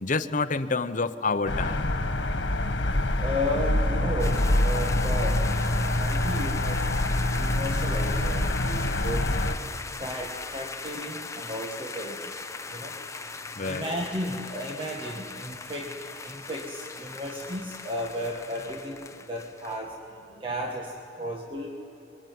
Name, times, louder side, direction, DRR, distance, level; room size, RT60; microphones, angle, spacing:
voice 1, 0.0-2.0 13.6-13.8, left 3 dB, 45° left, 8 dB, 0.9 m, -28 dB
sound 1, 1.5-9.6, left 1 dB, 85° left, 1.7 m, -25 dB
voice 2, 3.2-5.5 5.9-6.9 7.3-9.3 10.0-12.3 12.7-13.0 13.6-20.0 20.4-21.7, equal, 30° right, 1 dB, 1.8 m, -34 dB
sound 2, 4.2-19.8, left 4 dB, 15° left, 0.9 m, -39 dB
25.5 x 23.5 x 9.5 m, 3.0 s
head